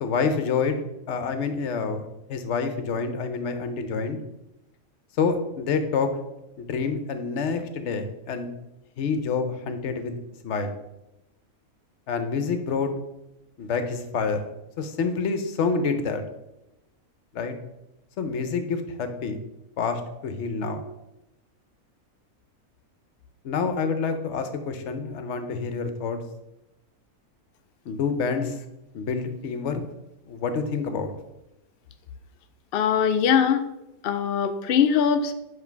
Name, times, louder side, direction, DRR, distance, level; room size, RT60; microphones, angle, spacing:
voice 1, 0.0-4.2 5.2-6.1 6.6-8.5 9.0-10.2 10.4-10.8 12.1-12.9 13.6-14.5 14.8-16.2 17.3-17.5 18.2-19.4 19.8-20.8 23.4-26.2 27.9-28.6 28.9-29.8 30.3-31.1, left 5 dB, 60° left, 8 dB, 0.9 m, -27 dB
voice 2, 32.7-33.6 34.0-35.3, left 7 dB, 85° left, 8 dB, 0.5 m, -21 dB
7.2 x 3.2 x 4.5 m, 0.92 s
omnidirectional pair, 1.5 m